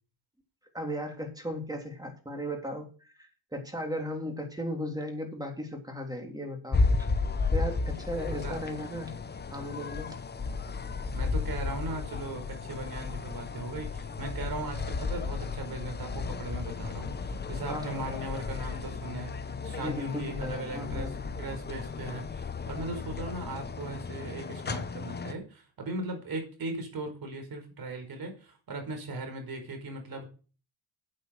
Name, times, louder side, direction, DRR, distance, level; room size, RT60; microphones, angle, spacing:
voice 1, 0.7-7.1 7.5-9.1 9.5-10.1 17.7-18.2 19.8-21.2, equal, 10° right, 2 dB, 3.4 m, -36 dB
sound 1, 6.7-25.3, left 4 dB, 20° left, 0.9 m, -33 dB
voice 2, 11.1-30.3, right 2 dB, 45° right, 5 dB, 4.8 m, -38 dB
8.6 x 8.5 x 6.5 m, 0.36 s
cardioid pair, 95°, 49 cm